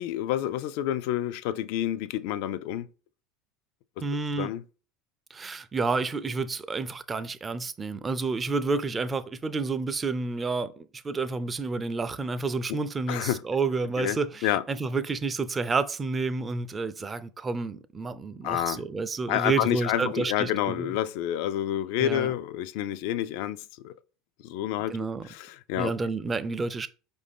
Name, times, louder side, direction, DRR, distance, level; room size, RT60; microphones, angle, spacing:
voice 1, 0.0-2.9 4.4-4.6 13.1-13.4 14.0-14.2 14.4-14.6 18.4-18.8 19.3-23.9 24.4-24.9 25.3-25.9, left 12 dB, 70° left, 0.3 m, -28 dB
voice 2, 4.0-4.5 5.3-21.0 22.0-22.3 24.9-25.3 25.7-26.9, right 4 dB, 25° right, 0.4 m, -30 dB
4.9 x 2.6 x 3.4 m
hypercardioid pair, 80°, 0 cm